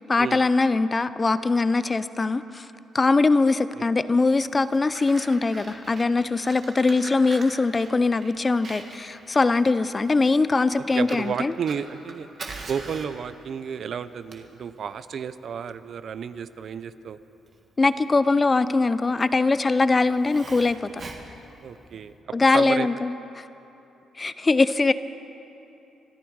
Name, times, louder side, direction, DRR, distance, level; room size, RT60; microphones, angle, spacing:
voice 1, 0.0-2.7 2.9-11.5 17.8-21.0 22.3-23.5 24.2-24.9, left 3 dB, 25° left, 14 dB, 0.5 m, -22 dB
Fire, 4.4-22.1, right 3 dB, 45° right, 1.7 m, -44 dB
voice 2, 10.9-12.3 12.7-17.2 21.6-22.1 22.5-22.9, right 7 dB, 60° right, 14 dB, 0.5 m, -32 dB
25.5 x 10.5 x 4.7 m, 2.9 s
cardioid pair, 95°, 0 cm